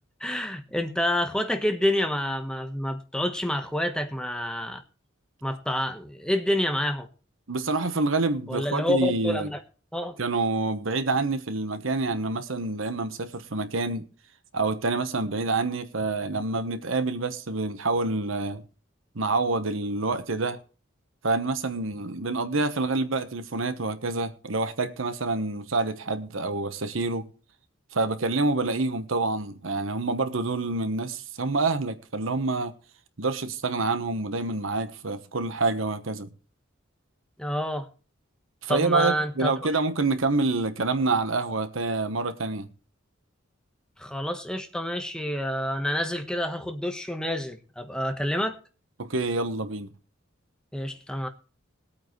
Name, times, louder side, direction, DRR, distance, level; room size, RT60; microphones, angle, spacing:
voice 1, 0.2-4.8 5.4-7.1 8.5-9.6 9.9-10.2 37.4-37.9 38.7-39.5 44.0-48.6 50.7-51.3, left 1 dB, 5° left, 1.2 m, -28 dB
voice 2, 7.5-9.5 10.2-14.1 14.5-18.6 19.1-20.6 21.2-27.3 27.9-32.7 33.2-36.3 38.6-42.7 49.0-49.9, right 3 dB, 75° right, 1.1 m, -27 dB
21.5 x 8.7 x 3.2 m
head